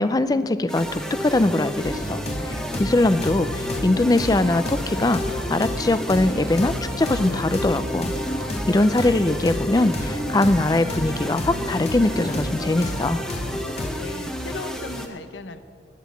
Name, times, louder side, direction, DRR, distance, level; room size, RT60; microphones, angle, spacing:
voice 1, 0.0-2.2 2.5-8.1 8.7-13.2, left 2 dB, 20° left, 14 dB, 0.4 m, -21 dB
sound 1, 0.7-15.1, equal, 5° left, 0.9 m, -31 dB
sound 2, 1.8-13.9, left 1 dB, 35° left, 1.0 m, -32 dB
sound 3, 4.1-4.3 5.3-5.5 6.5-6.7 7.6-7.9 8.8-9.0 9.9-10.1, right 1 dB, 65° right, 2.0 m, -47 dB
voice 2, 13.6-15.6, left 4 dB, 90° left, 11 dB, 0.7 m, -37 dB
11.5 x 9.3 x 8.4 m, 2.3 s
head